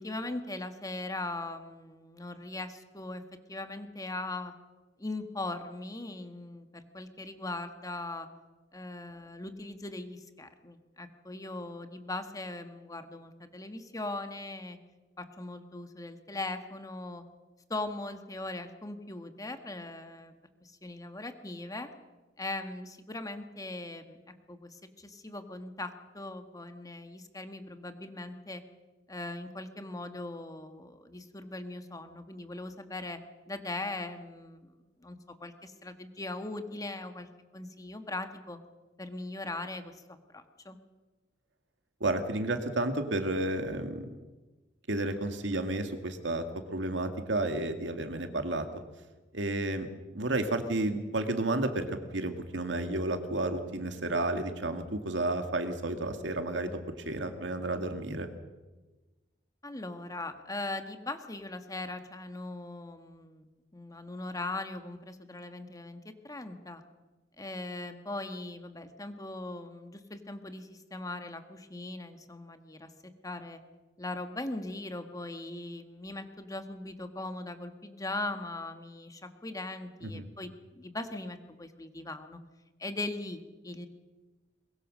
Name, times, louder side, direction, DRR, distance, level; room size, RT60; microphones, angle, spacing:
voice 1, 0.0-3.2 3.5-4.5 5.0-8.3 8.7-14.8 15.2-17.2 17.7-20.3 20.6-21.9 22.4-28.6 29.1-33.2 33.5-34.7 35.0-38.6 39.0-40.0 40.3-40.8 59.6-66.8 67.4-73.6 74.0-82.4 82.8-83.9, left 2 dB, 20° left, 8 dB, 1.6 m, -40 dB
voice 2, 42.0-44.1 44.9-46.4 46.7-48.7 49.3-49.9 50.1-51.9 52.1-56.8 57.0-58.3 80.1-80.2, right 2 dB, 85° right, 7 dB, 2.2 m, -31 dB
22.0 x 22.0 x 6.3 m, 1.2 s
head